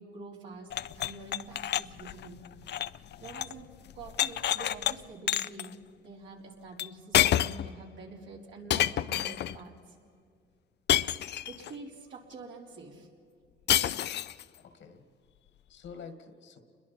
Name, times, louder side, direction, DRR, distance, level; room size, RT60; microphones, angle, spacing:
voice 1, 0.0-2.4 3.0-3.7 3.9-9.9 11.5-13.1 14.3-14.4, right 3 dB, 70° right, -2 dB, 4.2 m, -47 dB
sound 1, 0.7-3.6 3.9-4.9 5.3-5.7 6.8-6.9 7.1-7.7 8.7-9.6 10.9-11.7 13.7-14.4, left 11 dB, 60° left, 0.5 m, -28 dB
voice 2, 14.6-15.0 15.4-16.6, left 6 dB, 75° left, 7 dB, 2.0 m, -48 dB
30.0 x 22.0 x 4.4 m, 2.3 s
cardioid pair, 90°, 20 cm